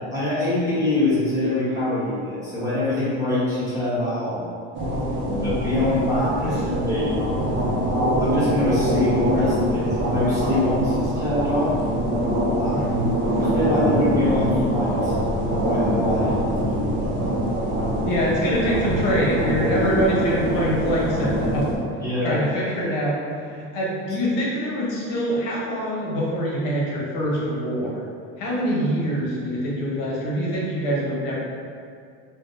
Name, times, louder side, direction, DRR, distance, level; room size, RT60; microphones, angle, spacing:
voice 1, 0.1-4.5 5.4-7.2 8.2-11.8 12.6-15.1 15.5-17.2 22.0-22.4, left 2 dB, 10° right, -11 dB, 1.1 m, -24 dB
sound 1, 4.7-21.8, right 1 dB, 40° right, 0.6 m, -24 dB
voice 2, 5.2-5.5 6.4-6.6 12.7-13.0 18.0-21.8 22.2-28.0 28.4-31.4, equal, 70° left, -5 dB, 0.9 m, -24 dB
3.4 x 2.2 x 2.6 m, 2.3 s
supercardioid pair, 125°, 31 cm